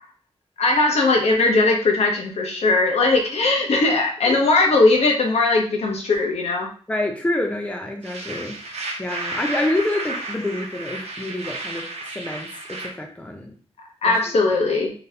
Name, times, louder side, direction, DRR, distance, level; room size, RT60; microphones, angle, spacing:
voice 1, 0.6-6.7 14.0-14.9, left 3 dB, 75° left, 0 dB, 1.0 m, -19 dB
voice 2, 6.9-8.6 9.0-11.8 12.1-13.5 14.0-14.3, left 1 dB, 10° left, 2 dB, 0.6 m, -27 dB
sound 1, 8.0-12.9, right 2 dB, 70° right, 0.8 m, -32 dB
4.0 x 3.5 x 2.8 m, 0.43 s
wide cardioid pair, 155°, 11 cm